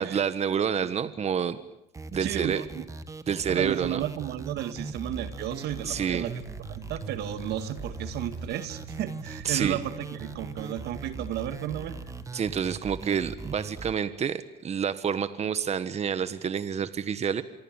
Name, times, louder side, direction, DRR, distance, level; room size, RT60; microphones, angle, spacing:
voice 1, 0.0-1.6 2.1-2.6 3.3-4.0 5.8-6.2 9.4-9.8 12.3-17.4, right 7 dB, 40° right, 12 dB, 1.5 m, -28 dB
sound 1, 1.9-13.9, right 3 dB, 20° right, 1.6 m, -40 dB
voice 2, 2.2-2.8 3.5-6.4 6.7-12.0, right 11 dB, 75° right, 11 dB, 2.0 m, -33 dB
sound 2, 4.7-12.3, right 5 dB, 80° left, 3.0 m, -46 dB
27.0 x 23.0 x 9.1 m, 0.81 s
cardioid pair, 110°, 17 cm